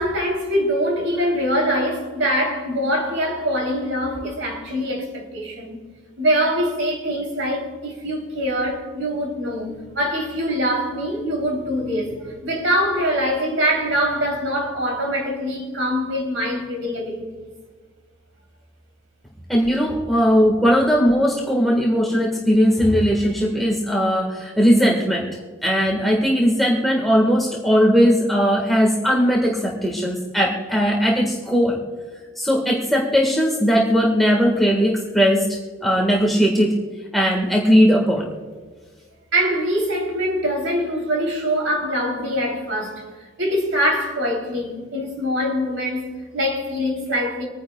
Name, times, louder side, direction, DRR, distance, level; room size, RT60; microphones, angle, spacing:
voice 1, 0.0-5.8 6.2-17.5 39.3-43.1 43.4-47.4, equal, 70° right, 3.2 m, -23 dB
voice 2, 19.5-25.3 25.6-31.8 32.3-36.8 37.1-38.3, equal, ahead, 1.5 m, -18 dB
26.0 x 10.0 x 2.3 m
head